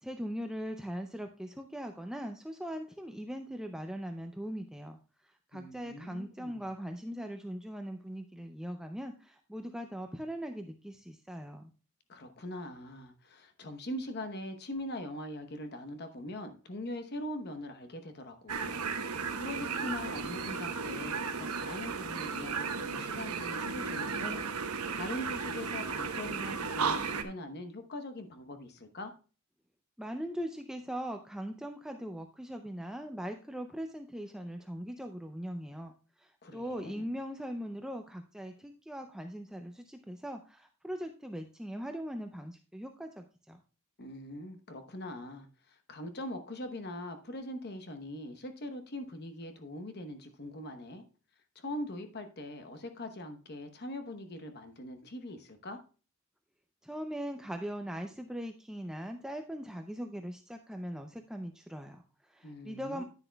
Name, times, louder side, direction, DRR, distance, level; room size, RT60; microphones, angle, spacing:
voice 1, 0.0-11.7 30.0-43.6 56.8-63.0, equal, 5° right, 5 dB, 0.4 m, -40 dB
voice 2, 5.5-6.6 12.1-24.4 24.7-29.1 36.4-37.1 44.0-51.0 51.5-55.8 62.4-63.0, left 1 dB, 45° left, 8 dB, 0.9 m, -42 dB
sound 1, 18.5-27.2, right 5 dB, 90° right, 1.0 m, -35 dB
10.0 x 9.9 x 2.3 m, 0.37 s
head